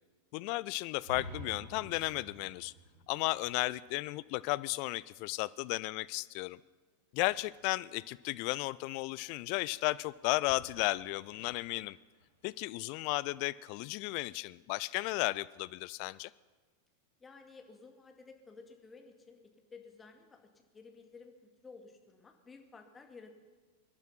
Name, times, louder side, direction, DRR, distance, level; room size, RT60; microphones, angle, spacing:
voice 1, 0.3-2.7 3.1-6.6 7.1-12.0 12.4-16.3, left 21 dB, 45° left, 19 dB, 0.4 m, -34 dB
sound 1, 1.0-4.9, right 1 dB, 45° right, 3.9 m, -49 dB
sound 2, 7.2-12.6, left 2 dB, 80° left, 7.2 m, -64 dB
voice 2, 17.2-19.4 19.7-20.4 20.7-23.3, left 4 dB, 15° left, 3 dB, 2.1 m, -54 dB
24.0 x 10.5 x 5.7 m, 1.4 s
figure-of-eight pair, 90°, 0 cm